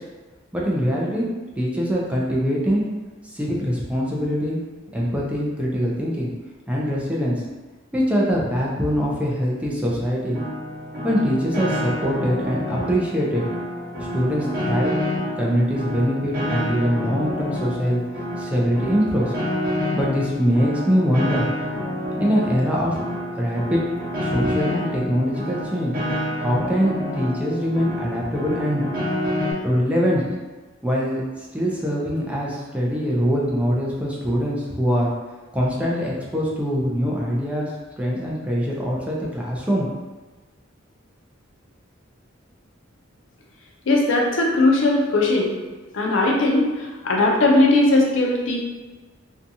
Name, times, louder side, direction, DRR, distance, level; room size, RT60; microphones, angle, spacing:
voice 1, 0.5-1.2 1.6-2.8 3.2-4.6 4.9-6.3 6.7-7.4 7.9-10.4 11.0-13.4 14.0-14.9 15.4-18.0 18.4-19.3 19.9-21.4 22.2-23.0 23.3-23.8 24.2-25.9 26.4-28.8 29.6-30.2 30.8-31.2 31.5-35.1 35.5-37.7 38.0-39.9, equal, 5° right, -4 dB, 0.4 m, -23 dB
Piano, 10.3-29.5, equal, 45° right, 0.9 m, -28 dB
voice 2, 43.9-45.6 45.9-48.6, left 2 dB, 70° left, -1 dB, 0.5 m, -19 dB
2.6 x 2.3 x 2.6 m, 1.3 s
head